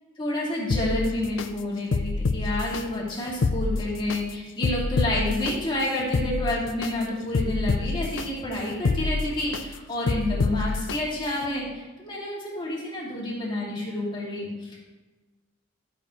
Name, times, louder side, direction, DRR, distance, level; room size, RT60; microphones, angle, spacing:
voice 1, 0.2-14.8, left 1 dB, 25° left, -5 dB, 2.7 m, -29 dB
sound 1, 0.7-1.5 1.9-2.8 3.3-4.2 4.6-5.5 6.0-6.9 7.3-8.3 8.7-9.6 10.1-11.0 11.4-11.5, left 3 dB, 65° left, 0.5 m, -26 dB
13.0 x 6.6 x 3.2 m, 1.2 s
head